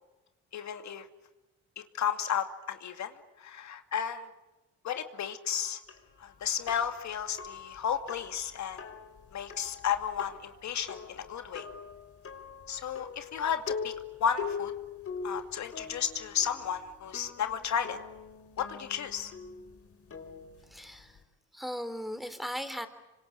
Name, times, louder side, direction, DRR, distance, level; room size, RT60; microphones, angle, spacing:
voice 1, 0.5-1.1 1.8-4.3 4.8-5.8 6.2-8.9 9.3-11.7 12.7-13.9 14.2-14.7 15.2-18.0 18.6-19.3, left 8 dB, 65° left, 7 dB, 2.5 m, -33 dB
sound 1, 5.9-21.2, left 6 dB, 50° left, 4.2 m, -43 dB
voice 2, 20.7-21.2 21.5-22.9, equal, ahead, 10 dB, 3.4 m, -37 dB
27.0 x 25.0 x 8.6 m, 1.1 s
cardioid pair, 90°, 30 cm